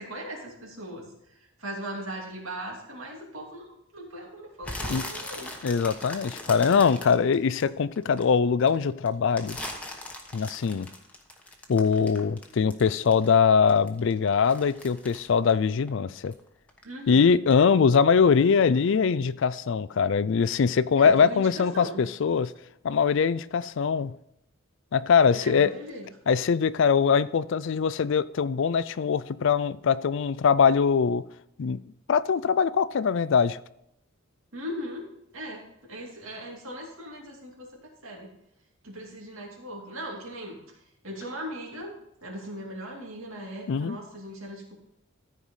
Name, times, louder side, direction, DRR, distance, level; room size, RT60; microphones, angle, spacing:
voice 1, 0.0-3.7 3.9-5.5 16.8-17.3 21.0-22.1 25.3-26.1 34.5-35.1 35.3-37.7 38.0-38.3 38.8-40.6 41.0-41.9 42.2-44.7, equal, 70° right, -1 dB, 2.7 m, -39 dB
sound 1, 4.6-8.2 8.6-13.4 13.7-16.4 16.7-17.1 17.5-17.6, left 1 dB, 5° left, 1.1 m, -39 dB
voice 2, 5.6-9.6 10.3-10.9 11.7-16.3 17.1-22.5 22.8-24.1 24.9-25.7 26.3-31.2 31.6-31.8 32.1-33.6 43.7-44.0, left 6 dB, 60° left, 17 dB, 0.4 m, -22 dB
14.0 x 4.8 x 5.5 m, 0.79 s
head